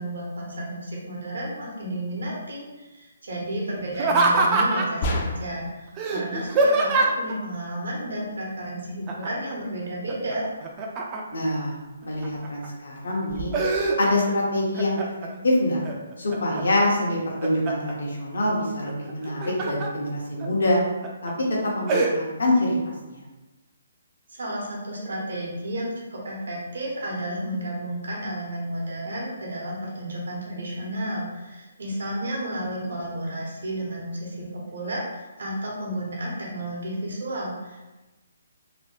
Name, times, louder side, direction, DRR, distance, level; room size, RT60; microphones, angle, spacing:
voice 1, 0.0-10.5 24.3-37.9, right 1 dB, 75° right, -4 dB, 0.9 m, -32 dB
Laughter, 3.9-5.0 6.0-7.3 9.1-9.5 9.9-11.5 12.0-12.7 13.1-14.4 14.7-15.3 15.8-16.6 17.1-17.9 19.1-19.9 20.4-20.5 21.0-21.3 21.9-22.1, right 3 dB, 25° right, 0.4 m, -24 dB
sound 1, 5.0-5.7, left 1 dB, 40° left, 0.4 m, -27 dB
voice 2, 11.3-11.7 12.0-13.5 14.0-15.1 15.4-15.8 16.2-20.8 21.2-21.3 21.6-22.7 23.1-23.2, left 1 dB, 75° left, -3 dB, 0.9 m, -25 dB
2.9 x 2.2 x 3.0 m, 1.1 s
hypercardioid pair, 155°, 0 cm